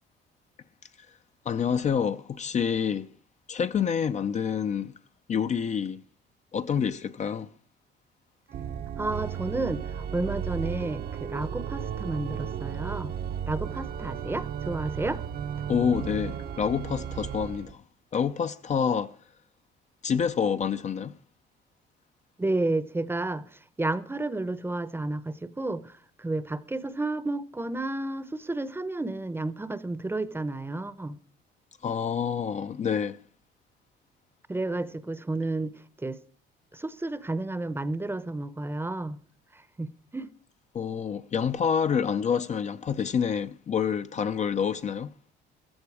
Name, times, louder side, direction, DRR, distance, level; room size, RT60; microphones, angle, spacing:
voice 1, 1.5-3.1 3.5-4.9 5.3-6.0 6.5-7.5 15.7-17.8 18.1-19.2 20.0-21.1 31.8-33.2 40.7-45.1, left 7 dB, 35° left, 0.6 m, -27 dB
Organ, 8.5-17.7, right 8 dB, 50° right, 0.8 m, -34 dB
voice 2, 9.0-13.1 13.5-15.2 22.4-31.2 34.5-35.7 36.0-36.2 36.7-39.2 39.5-40.3, right 2 dB, 10° right, 0.8 m, -31 dB
15.5 x 13.0 x 4.8 m
cardioid pair, 115°, 20 cm